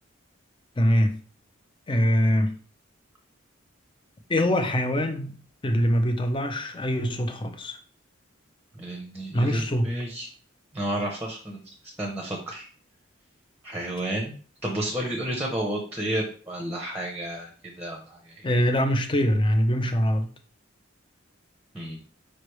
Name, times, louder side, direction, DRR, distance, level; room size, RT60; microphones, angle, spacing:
voice 1, 0.8-1.2 1.9-2.5 4.3-7.8 9.3-9.9 18.4-20.3, equal, 25° left, 7 dB, 0.5 m, -23 dB
voice 2, 8.7-10.3 10.7-12.7 13.6-14.3 14.6-18.5 21.7-22.0, right 1 dB, 10° right, 0 dB, 0.8 m, -31 dB
5.2 x 3.2 x 3.1 m, 0.41 s
head